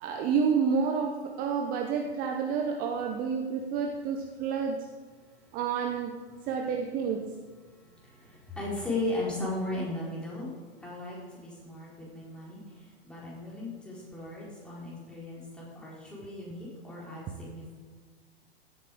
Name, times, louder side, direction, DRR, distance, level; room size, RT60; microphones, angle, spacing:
voice 1, 0.0-4.8 5.5-6.1 6.5-7.2, right 6 dB, 30° right, 4 dB, 1.0 m, -29 dB
voice 2, 5.2-5.6 6.4-6.7 7.6-17.7, left 2 dB, 5° left, -6 dB, 4.4 m, -37 dB
16.5 x 8.5 x 5.1 m, 1.4 s
figure-of-eight pair, 100°, 31 cm